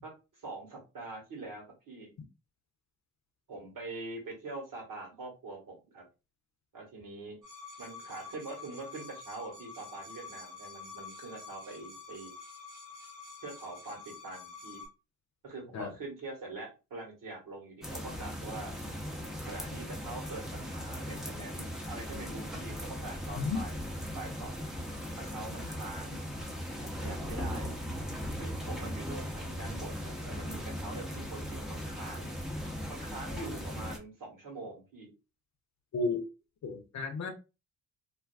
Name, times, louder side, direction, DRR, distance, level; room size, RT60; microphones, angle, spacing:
voice 1, 0.0-2.1 3.5-6.0 6.7-7.4 7.8-12.3 13.4-14.8 15.4-18.7 19.4-23.8 24.1-24.7 25.2-26.2 27.0-27.7 28.4-32.3 32.9-35.1, right 2 dB, 60° right, 1.4 m, -44 dB
sound 1, 7.4-14.9, left 4 dB, 85° right, 1.0 m, -48 dB
sound 2, 17.8-34.0, equal, ahead, 0.8 m, -38 dB
voice 2, 35.9-36.2 36.6-37.3, left 3 dB, 50° left, 0.7 m, -32 dB
2.5 x 2.2 x 2.3 m
hypercardioid pair, 40°, 37 cm